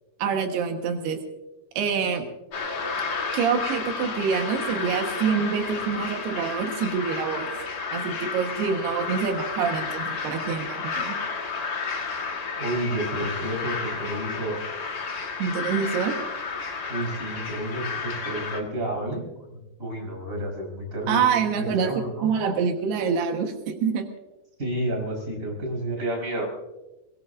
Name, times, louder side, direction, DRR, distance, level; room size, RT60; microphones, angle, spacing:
voice 1, 0.2-1.2 1.8-2.3 3.3-7.5 7.9-11.2 15.4-16.2 21.1-24.1, right 6 dB, 85° right, 4 dB, 3.5 m, -26 dB
sound 1, 2.5-18.6, left 4 dB, 60° left, 1.0 m, -32 dB
voice 2, 12.6-14.6 16.9-19.2 19.5-21.2 21.5-22.3 24.6-26.5, right 1 dB, 20° right, 0 dB, 4.7 m, -30 dB
22.0 x 20.5 x 2.6 m, 1.0 s
omnidirectional pair, 4.5 m